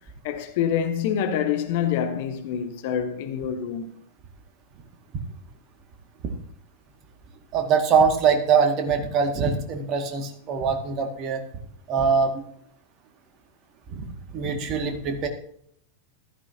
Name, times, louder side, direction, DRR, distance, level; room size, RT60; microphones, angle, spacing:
voice 1, 0.2-3.9, left 8 dB, 50° left, 1.2 m, -26 dB
voice 2, 7.5-11.4 11.9-12.4 13.9-14.1 14.3-15.3, right 6 dB, 35° right, 2.0 m, -23 dB
15.0 x 13.0 x 2.8 m
figure-of-eight pair, 90°, 0 cm